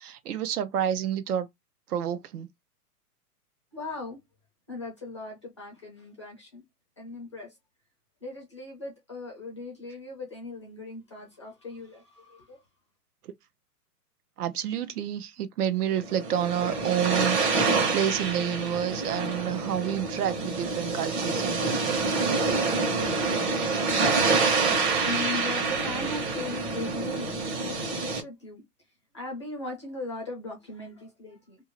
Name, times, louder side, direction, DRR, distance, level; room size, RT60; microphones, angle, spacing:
voice 1, 0.0-1.5 1.9-2.5 14.4-22.3, right 10 dB, 70° right, 0.6 m, -29 dB
voice 2, 3.7-4.2 4.7-6.6 7.0-7.5 8.2-12.6 25.1-28.6 29.1-31.6, left 2 dB, 20° left, 0.4 m, -38 dB
sound 1, 15.9-28.2, right 4 dB, 45° right, 1.1 m, -27 dB
2.7 x 2.4 x 3.0 m
hypercardioid pair, 165°, 48 cm